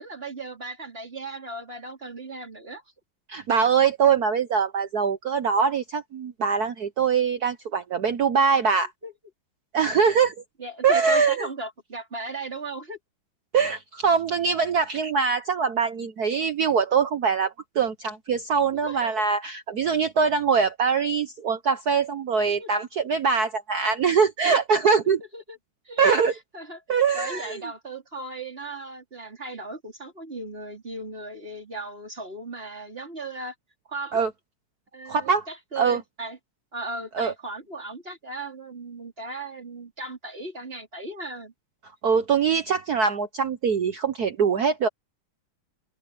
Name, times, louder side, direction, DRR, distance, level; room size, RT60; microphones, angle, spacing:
voice 1, 0.0-2.8 9.0-9.1 10.6-13.0 18.8-19.2 22.6-22.7 25.3-25.6 25.8-26.0 26.5-26.8 27.1-33.5 33.9-34.2 34.9-36.4 36.7-41.5, right 2 dB, 25° right, 4.2 m, -36 dB
voice 2, 3.3-8.9 9.7-10.3 10.8-11.5 13.5-25.2 26.0-26.3 26.9-27.6 34.1-34.3 35.1-35.5 35.8-36.0 37.1-37.3 42.0-44.9, right 6 dB, 55° right, 1.3 m, -23 dB
open air
omnidirectional pair, 2.3 m